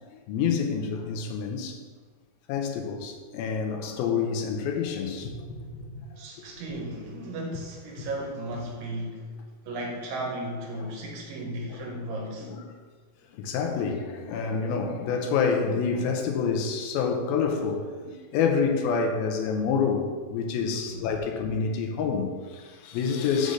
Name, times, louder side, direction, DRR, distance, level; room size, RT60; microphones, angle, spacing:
voice 1, 0.3-1.8 2.5-6.0 11.7-11.8 12.4-12.6 13.3-23.5, left 5 dB, 85° left, 3 dB, 2.6 m, -28 dB
voice 2, 6.2-9.2 9.7-12.5 20.9-21.1, right 1 dB, 75° right, -1 dB, 2.6 m, -35 dB
6.5 x 3.9 x 6.2 m, 1.5 s
omnidirectional pair, 4.3 m